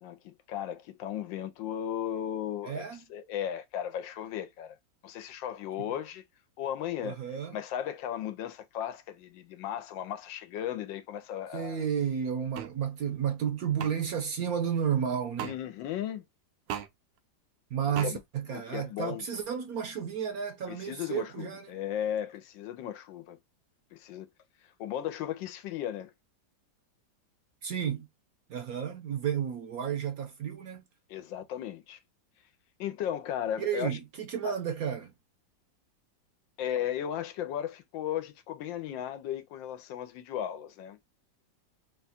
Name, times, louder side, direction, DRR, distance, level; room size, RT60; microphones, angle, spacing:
voice 1, 0.0-2.8 3.1-4.8 5.0-6.2 6.6-7.2 7.5-11.8 15.4-16.2 18.0-18.2 18.5-19.2 20.7-23.4 23.9-24.3 24.8-26.1 31.1-32.0 32.8-33.9 34.4-34.6 36.6-41.0, left 10 dB, 85° left, 1.4 m, -36 dB
voice 2, 2.6-3.0 5.8-5.9 7.0-7.6 11.5-15.5 17.7-21.7 27.6-28.1 28.5-30.8 33.6-35.1, right 8 dB, 65° right, 1.0 m, -32 dB
sound 1, 12.5-12.7 13.8-13.9 15.4-15.6 16.7-16.9 17.9-18.1, right 10 dB, 85° right, 1.3 m, -36 dB
3.9 x 2.3 x 4.1 m
omnidirectional pair, 2.0 m